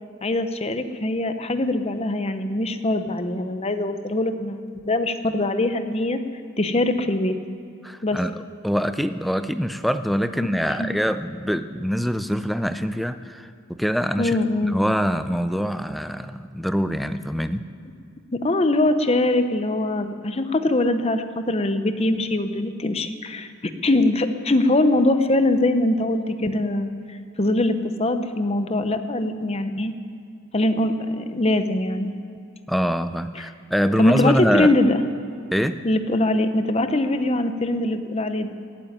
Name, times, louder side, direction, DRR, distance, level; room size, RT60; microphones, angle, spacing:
voice 1, 0.2-4.6 4.8-6.2 6.6-7.3 8.0-8.2 10.4-10.9 14.2-14.8 18.3-23.5 23.8-29.9 30.5-32.1 33.4-33.5 34.0-35.0 35.8-38.5, left 2 dB, 30° left, 9 dB, 0.7 m, -22 dB
voice 2, 7.8-8.3 8.6-14.4 14.6-17.7 32.7-34.7 35.5-35.8, equal, ahead, 10 dB, 0.4 m, -24 dB
14.5 x 9.0 x 9.7 m, 2.4 s
head